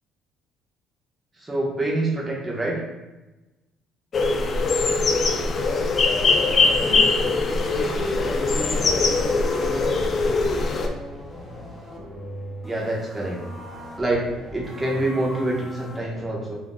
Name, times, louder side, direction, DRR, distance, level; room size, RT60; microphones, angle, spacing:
voice 1, 1.4-2.8 12.6-13.4 14.0-16.6, right 1 dB, 20° right, -4 dB, 0.9 m, -26 dB
sound 1, 4.1-10.9, left 3 dB, 45° left, 0.4 m, -21 dB
voice 2, 6.7-10.2, equal, 65° right, -8 dB, 1.4 m, -36 dB
sound 2, 8.9-16.2, equal, 15° left, 0.9 m, -40 dB
3.5 x 2.6 x 2.2 m, 1.1 s
supercardioid pair, 70°, 0 cm